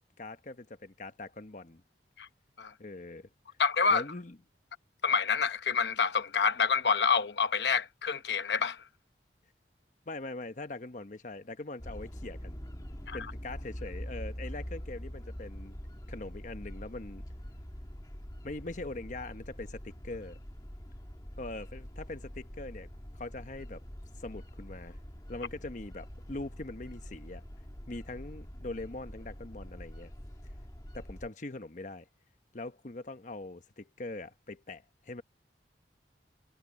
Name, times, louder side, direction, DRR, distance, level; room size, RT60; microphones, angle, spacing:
voice 1, 0.2-1.8 2.8-3.3 3.9-4.4 10.1-12.6 13.1-15.8 16.1-17.2 18.4-20.4 21.4-22.9 23.2-23.8 24.2-25.0 25.3-27.4 27.9-30.1 30.9-32.1 32.5-35.2, left 2 dB, 45° left, 1.0 m, -42 dB
voice 2, 3.6-4.0 5.0-8.8 13.1-13.2, left 5 dB, 75° left, 0.9 m, -27 dB
sound 1, 11.8-31.3, equal, 20° left, 1.6 m, -44 dB
head